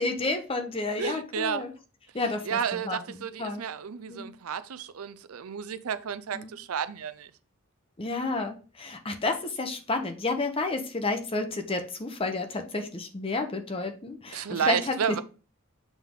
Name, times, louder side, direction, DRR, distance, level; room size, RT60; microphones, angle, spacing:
voice 1, 0.0-1.7 2.1-3.0 3.4-3.6 4.1-4.3 6.3-6.5 8.0-15.2, left 3 dB, 25° left, 0.7 m, -31 dB
voice 2, 1.0-1.6 2.4-7.3 14.3-15.2, right 7 dB, 90° right, 0.5 m, -31 dB
7.2 x 3.6 x 3.6 m
head